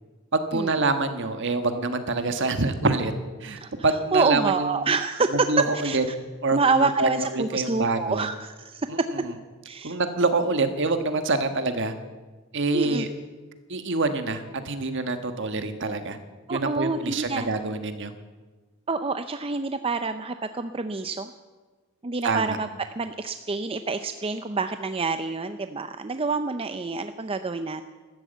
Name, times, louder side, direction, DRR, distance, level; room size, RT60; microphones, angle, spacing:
voice 1, 0.3-3.1 3.4-4.9 5.5-6.0 6.4-8.3 8.9-9.3 9.8-11.9 12.5-13.1 13.7-16.2 16.5-18.1 22.2-22.6, right 3 dB, 55° right, 8 dB, 1.4 m, -26 dB
voice 2, 4.1-5.3 5.8-6.0 6.5-8.9 9.7-10.0 12.7-13.1 16.5-17.5 18.9-21.3 22.0-22.7 23.0-27.9, right 4 dB, 25° right, 9 dB, 0.5 m, -27 dB
13.0 x 13.0 x 8.1 m, 1.3 s
head